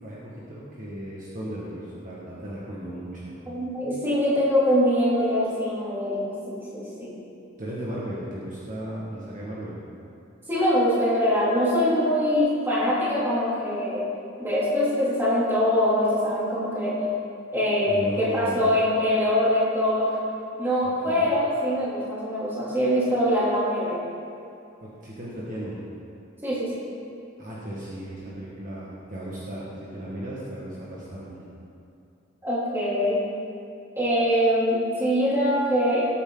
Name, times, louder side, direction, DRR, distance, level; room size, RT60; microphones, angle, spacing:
voice 1, 0.0-3.4 7.6-9.8 17.9-18.8 21.1-21.3 24.8-25.8 27.4-31.5, right 1 dB, 40° right, -7 dB, 1.8 m, -35 dB
voice 2, 3.5-7.2 10.5-14.1 14.4-17.1 17.5-20.2 20.6-24.0 26.4-26.7 32.4-33.2 34.0-36.1, equal, 10° right, -8 dB, 3.1 m, -23 dB
18.5 x 8.7 x 4.0 m, 2.7 s
head